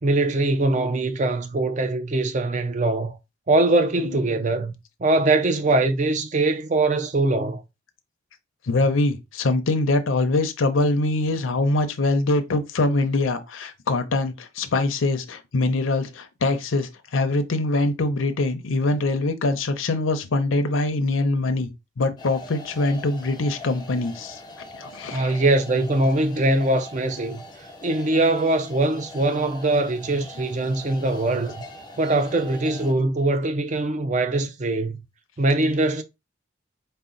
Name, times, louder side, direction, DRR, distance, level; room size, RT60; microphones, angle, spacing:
voice 1, 0.0-3.2 3.5-4.7 5.0-7.6 25.1-27.4 27.8-31.6 32.0-35.0 35.4-36.0, right 2 dB, 40° right, 0.5 m, -22 dB
voice 2, 8.6-21.7 22.0-24.4 24.8-25.4, left 2 dB, 90° left, 0.6 m, -23 dB
sound 1, 22.2-32.9, left 2 dB, 20° left, 0.5 m, -42 dB
4.1 x 2.1 x 3.8 m
head